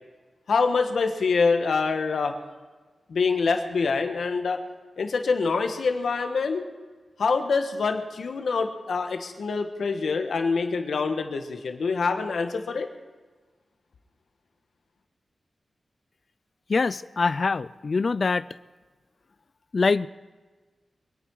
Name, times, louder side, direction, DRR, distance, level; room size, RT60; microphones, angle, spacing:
voice 1, 0.5-2.3 3.1-4.6 5.0-6.6 7.2-12.9, left 4 dB, 80° left, 5 dB, 1.4 m, -25 dB
voice 2, 16.7-18.4 19.7-20.1, left 4 dB, 50° left, 17 dB, 0.4 m, -24 dB
24.5 x 9.3 x 4.8 m, 1.3 s
wide cardioid pair, 90°, 0 cm